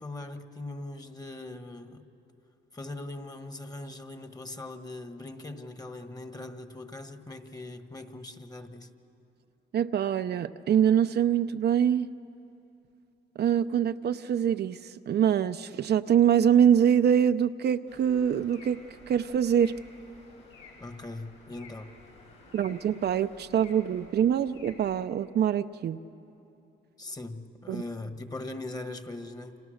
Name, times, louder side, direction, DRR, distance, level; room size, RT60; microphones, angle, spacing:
voice 1, 0.0-2.1 2.7-8.9 20.8-21.9 27.0-29.6, left 2 dB, 20° left, 8 dB, 1.5 m, -40 dB
voice 2, 9.7-12.1 13.4-18.8 19.1-19.8 22.5-26.0 27.7-27.8, right 9 dB, 55° right, 9 dB, 0.6 m, -24 dB
sound 1, 17.9-25.0, left 3 dB, 75° left, 7.9 m, -53 dB
29.0 x 26.5 x 6.5 m, 2.8 s
cardioid pair, 90°, 20 cm